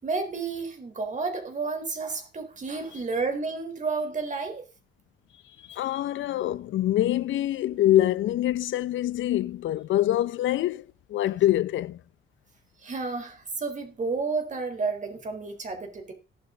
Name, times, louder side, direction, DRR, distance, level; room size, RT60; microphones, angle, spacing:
voice 1, 0.0-4.6 12.8-16.1, right 4 dB, 40° right, 4.2 m, -31 dB
voice 2, 5.7-12.0, left 13 dB, 75° left, 0.8 m, -25 dB
17.5 x 7.6 x 4.0 m
cardioid pair, 90°, 20 cm